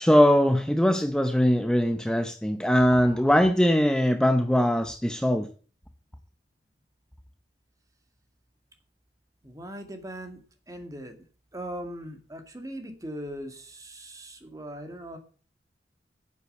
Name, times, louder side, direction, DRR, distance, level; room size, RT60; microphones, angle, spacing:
voice 1, 0.0-5.5, equal, 5° left, 7 dB, 0.7 m, -21 dB
voice 2, 9.4-10.4 10.7-11.2 11.5-15.2, equal, 20° right, 6 dB, 2.2 m, -39 dB
9.9 x 8.4 x 8.0 m, 0.40 s
head